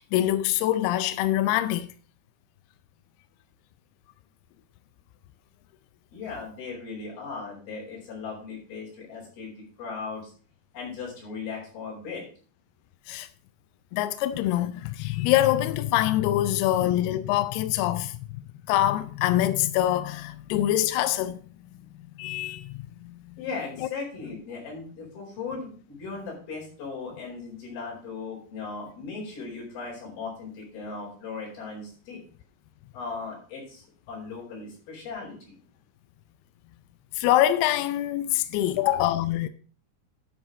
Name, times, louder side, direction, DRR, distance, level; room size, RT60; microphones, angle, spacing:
voice 1, 0.0-1.9 13.1-13.3 13.9-18.3 18.7-21.4 22.2-22.7 23.0-23.1 37.2-39.5, left 13 dB, 80° left, 2.5 m, -24 dB
voice 2, 6.1-10.3 10.7-12.2 23.4-32.2 32.9-35.6, left 4 dB, 65° left, 6.2 m, -37 dB
11.0 x 6.2 x 5.0 m
omnidirectional pair, 4.7 m